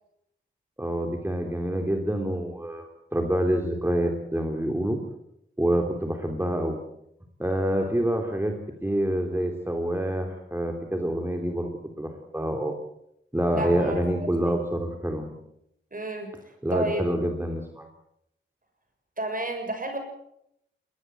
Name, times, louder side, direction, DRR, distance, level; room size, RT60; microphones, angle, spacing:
voice 1, 0.8-5.0 5.6-6.8 7.4-8.5 8.8-11.7 12.0-12.7 13.3-15.3 16.6-17.9, right 1 dB, 10° right, 3 dB, 3.2 m, -27 dB
voice 2, 13.5-14.6 15.9-16.3 16.7-17.0 19.2-20.0, right 2 dB, 40° right, 5 dB, 7.0 m, -31 dB
21.5 x 19.5 x 7.9 m, 0.78 s
cardioid pair, 60°, 21 cm